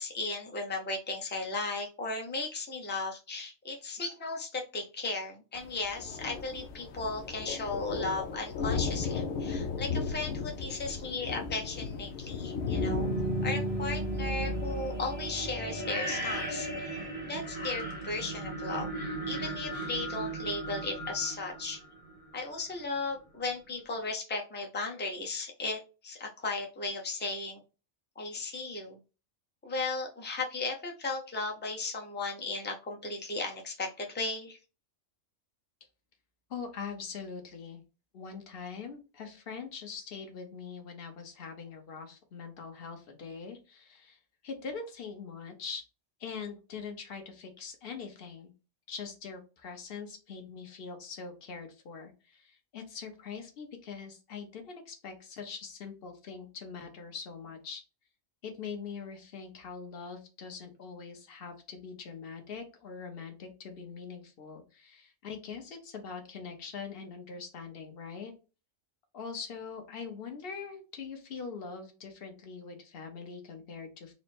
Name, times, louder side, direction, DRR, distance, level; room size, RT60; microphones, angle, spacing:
voice 1, 0.0-13.1 13.4-18.9 19.3-21.8 22.3-27.6 28.2-29.0 29.6-34.6, left 3 dB, 15° left, 1 dB, 0.5 m, -36 dB
Thunder, 5.6-15.5, left 5 dB, 80° left, 1.0 m, -36 dB
sound 1, 12.5-22.4, right 1 dB, 30° left, 1.1 m, -35 dB
voice 2, 36.5-37.8 38.1-45.8 46.2-48.5 48.9-57.8 58.4-68.3 69.1-74.1, left 5 dB, 50° left, 4 dB, 1.0 m, -43 dB
4.2 x 2.0 x 4.3 m, 0.32 s
omnidirectional pair, 1.3 m